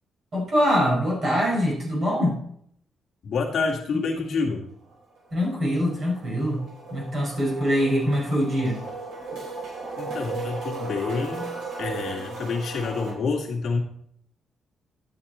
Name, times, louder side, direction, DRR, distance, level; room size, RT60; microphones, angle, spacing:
voice 1, 0.3-2.4 5.3-6.6 6.9-8.8, equal, 40° right, -3 dB, 4.9 m, -23 dB
voice 2, 3.2-4.7 10.0-11.5 11.8-13.8, left 4 dB, 50° left, -1 dB, 2.0 m, -28 dB
sound 1, 4.5-4.6 4.9-13.1, right 3 dB, 75° right, 5.5 m, -36 dB
12.0 x 9.2 x 4.3 m, 0.68 s
cardioid pair, 170°, 0 cm